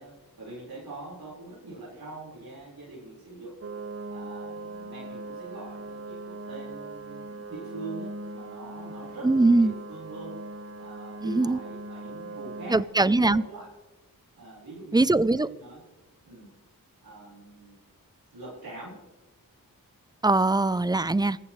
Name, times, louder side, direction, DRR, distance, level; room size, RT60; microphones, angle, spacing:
voice 1, 0.0-3.6 4.1-10.3 10.8-13.7 14.3-15.1 15.3-15.8 16.2-16.5 17.0-17.8 18.3-19.1, right 2 dB, 85° right, -7 dB, 4.7 m, -43 dB
sound 1, 3.6-12.8, right 2 dB, 40° right, 0.9 m, -40 dB
voice 2, 9.2-9.7 11.2-11.6 12.7-13.4 14.9-15.5 20.2-21.4, right 2 dB, 10° right, 18 dB, 0.4 m, -21 dB
27.0 x 14.5 x 3.2 m, 1.1 s
wide cardioid pair, 55°, 36 cm